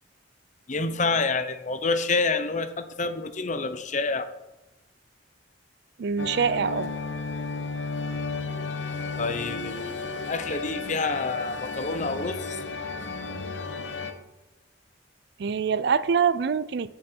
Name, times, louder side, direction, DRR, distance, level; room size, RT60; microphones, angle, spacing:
voice 1, 0.7-4.3 9.2-12.6, left 3 dB, 40° left, 10 dB, 0.8 m, -28 dB
voice 2, 6.0-6.9 15.4-16.9, right 6 dB, 60° right, 17 dB, 0.4 m, -24 dB
sound 1, 6.2-14.1, left 4 dB, 70° left, 1.0 m, -33 dB
16.0 x 6.3 x 4.4 m, 1.0 s
head